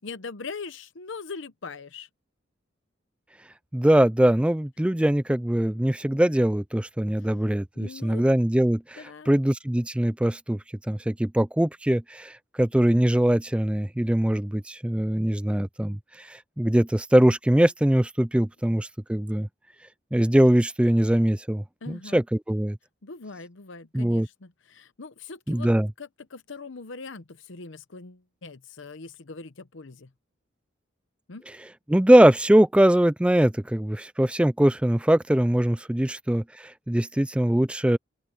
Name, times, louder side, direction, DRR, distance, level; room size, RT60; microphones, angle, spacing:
voice 1, 0.0-2.1 7.2-7.3 7.8-8.2 9.0-9.3 21.8-22.2 23.0-25.7 26.0-30.1 31.3-31.4, left 4 dB, 70° left, 0.9 m, -41 dB
voice 2, 3.7-10.6 10.9-19.5 20.1-22.8 23.9-24.3 25.5-25.9 31.9-38.0, right 1 dB, 5° right, 0.3 m, -22 dB
open air
head